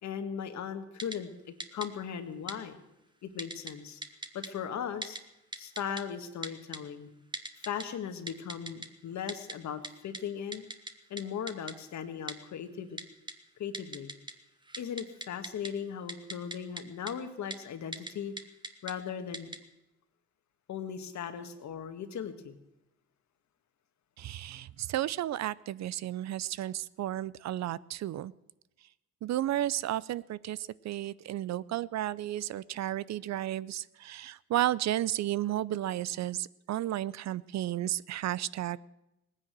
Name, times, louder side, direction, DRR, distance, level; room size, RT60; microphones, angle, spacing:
voice 1, 0.0-1.3 1.7-2.8 3.2-4.0 4.3-5.2 5.6-7.1 7.6-10.6 11.1-13.0 13.6-14.1 14.8-18.3 18.8-19.5 20.7-22.5, left 8 dB, 65° left, 8 dB, 1.7 m, -38 dB
Typing, 1.0-1.2 1.6-1.9 2.5-2.6 3.4-3.7 4.0-4.5 5.0-5.2 5.5-6.0 6.4-6.8 7.3-7.8 8.3-8.9 9.3-9.5 9.8-9.9 10.1-10.2 10.5-10.9 11.2-11.3 11.5-11.7 12.3-12.4 13.0-13.3 13.7-14.3 14.6-15.7 16.1-16.8 17.1-17.2 17.5-17.6 17.9-18.1 18.4-18.9 19.3-19.6, right 2 dB, 15° right, 1.3 m, -38 dB
voice 2, 24.2-28.3 29.2-38.8, right 13 dB, 65° right, 20 dB, 0.5 m, -33 dB
18.0 x 9.9 x 7.6 m, 0.90 s
cardioid pair, 90°, 30 cm